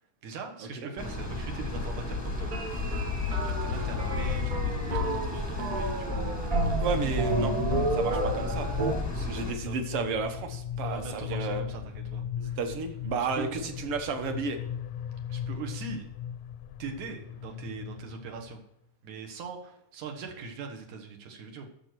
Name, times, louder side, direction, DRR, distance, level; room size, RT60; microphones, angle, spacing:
voice 1, 0.2-3.0 3.4-6.2 6.6-6.8 9.1-9.8 10.8-12.6 13.3-13.6 15.3-16.1 16.8-18.6 19.0-21.7, right 4 dB, 85° right, 3 dB, 2.8 m, -41 dB
sound 1, 1.0-9.5, left 2 dB, 15° left, 0.5 m, -34 dB
sound 2, 2.5-8.9, right 2 dB, 40° right, 1.3 m, -30 dB
sound 3, 2.7-18.6, left 10 dB, 80° left, 1.6 m, -38 dB
voice 2, 6.8-7.5 7.9-8.7 9.3-11.6 12.4-14.6, right 4 dB, 60° right, 7 dB, 1.8 m, -32 dB
11.0 x 6.8 x 4.5 m, 0.79 s
omnidirectional pair, 3.3 m